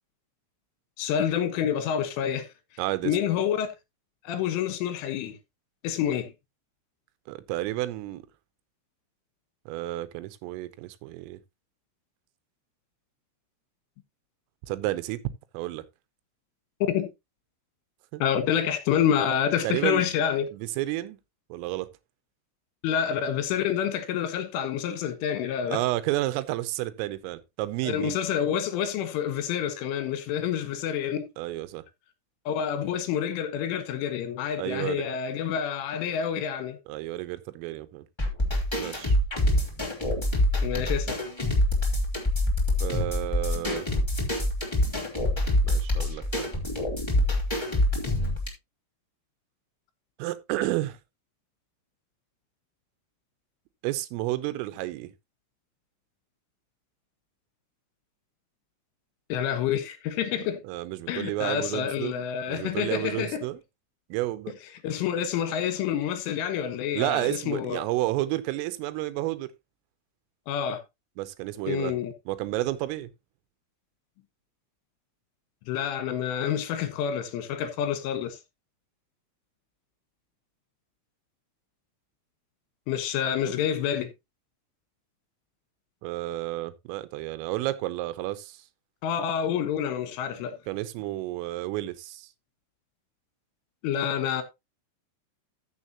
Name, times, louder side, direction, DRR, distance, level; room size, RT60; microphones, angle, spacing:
voice 1, 1.0-2.5 3.0-3.7 4.3-5.4 5.8-6.3 16.9-17.1 18.2-20.5 22.8-25.8 27.8-31.3 32.5-36.8 40.6-41.2 59.3-60.6 61.1-63.4 64.8-67.8 70.5-70.8 71.7-72.1 75.7-78.4 82.9-84.1 89.0-90.6 93.8-94.4, left 9 dB, 75° left, 3.8 m, -28 dB
voice 2, 2.8-3.2 7.3-8.2 9.7-11.4 14.7-15.2 15.5-15.8 18.1-18.2 19.6-20.0 20.5-21.2 21.5-21.9 25.7-28.2 31.4-31.8 34.6-35.0 36.9-38.1 38.8-39.2 42.8-43.9 45.6-46.5 50.2-51.0 53.8-55.1 60.6-62.2 62.5-63.6 64.1-64.5 66.9-69.5 71.2-71.9 72.3-73.1 86.0-88.6 90.7-92.3, right 16 dB, 85° right, 3.4 m, -31 dB
sound 1, 38.2-48.5, left 1 dB, 10° left, 1.5 m, -25 dB
14.0 x 7.1 x 2.9 m
omnidirectional pair, 5.9 m